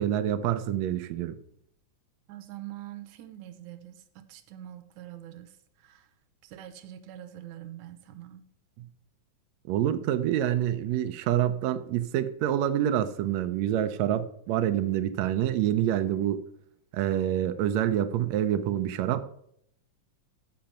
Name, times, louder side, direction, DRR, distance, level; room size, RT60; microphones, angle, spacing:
voice 1, 0.0-1.4 9.7-16.4 16.9-19.2, right 11 dB, 90° right, 9 dB, 1.5 m, -27 dB
voice 2, 2.3-6.1 6.4-8.5, right 13 dB, 70° right, 11 dB, 1.9 m, -44 dB
14.0 x 5.2 x 5.8 m, 0.71 s
omnidirectional pair, 4.0 m